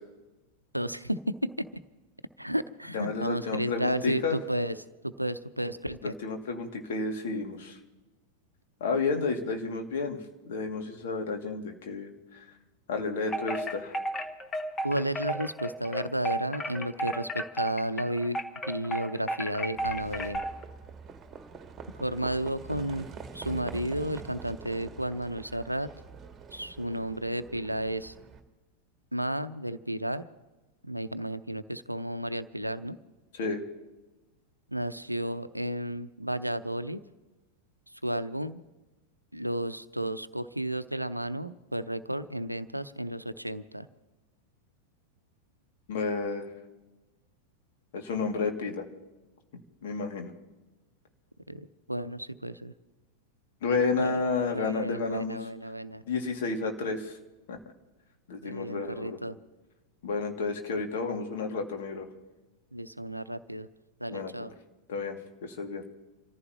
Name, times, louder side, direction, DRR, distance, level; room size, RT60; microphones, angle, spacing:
voice 1, 0.7-1.7 2.4-4.8 5.0-6.2 14.8-18.4 18.6-20.4 22.0-23.1 23.3-25.9 26.5-28.1 29.1-30.3 30.8-33.0 34.7-37.0 37.9-38.6 39.3-43.9 51.5-52.7 54.0-54.2 54.5-56.0 58.4-59.4 62.7-63.7 64.0-64.5, right 1 dB, 90° right, 13 dB, 0.6 m, -32 dB
voice 2, 2.9-4.4 6.0-7.8 8.8-12.4 12.9-13.9 33.3-33.6 45.9-46.5 47.9-48.9 49.5-50.3 53.6-55.4 56.1-57.2 57.5-57.6 58.3-59.2 60.0-62.1 64.1-64.3 64.9-65.8, left 4 dB, 55° left, 3 dB, 2.3 m, -31 dB
Wind chime, 13.2-20.6, equal, 20° left, 1.3 m, -33 dB
Livestock farm animals working animals, 19.7-28.4, right 5 dB, 20° right, 1.8 m, -45 dB
28.0 x 14.5 x 3.0 m, 1.1 s
figure-of-eight pair, 90°, 0 cm